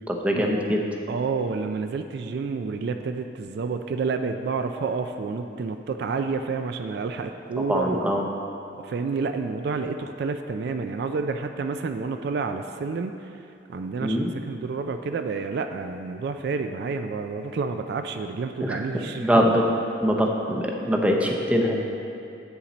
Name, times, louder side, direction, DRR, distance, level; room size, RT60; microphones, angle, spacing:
voice 1, 0.1-0.8 7.6-8.2 14.0-14.3 18.6-19.6 20.0-21.8, equal, 10° right, 0 dB, 0.6 m, -23 dB
voice 2, 1.1-8.0 8.8-19.4, right 4 dB, 60° right, 7 dB, 0.3 m, -29 dB
7.3 x 7.1 x 4.0 m, 2.7 s
head